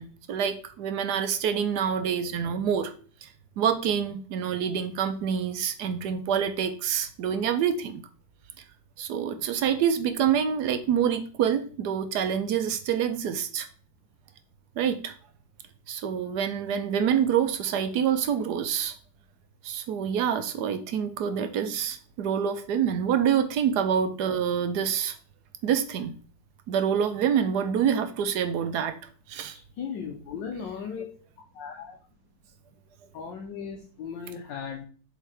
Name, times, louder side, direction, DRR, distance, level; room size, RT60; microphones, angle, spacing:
voice 1, 0.0-2.9 3.2-3.3 3.6-8.0 9.0-13.7 14.8-15.1 15.9-19.0 19.6-25.2 25.6-26.1 26.7-29.0 29.3-29.6, right 8 dB, 70° right, 9 dB, 1.1 m, -26 dB
voice 2, 29.7-31.1 31.5-32.0 33.1-34.9, left 6 dB, 80° left, 1 dB, 1.5 m, -37 dB
7.7 x 3.7 x 3.3 m, 0.41 s
omnidirectional pair, 2.0 m